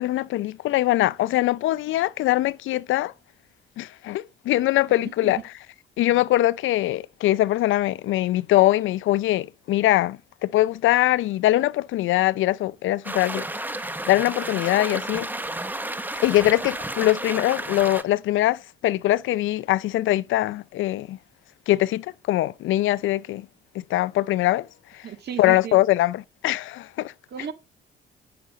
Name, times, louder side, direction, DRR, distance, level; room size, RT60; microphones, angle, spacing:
voice 1, 0.0-3.1 3.8-5.4 6.0-13.4 14.1-15.3 16.2-21.2 21.7-23.5 23.9-24.7 24.9-25.0 25.4-27.1, left 15 dB, 80° left, 0.5 m, -22 dB
voice 2, 5.0-5.4 25.0-25.8 27.3-27.5, right 8 dB, 55° right, 1.9 m, -34 dB
sound 1, 13.0-18.0, right 1 dB, 10° right, 1.0 m, -32 dB
9.7 x 6.7 x 5.0 m
cardioid pair, 90°, 20 cm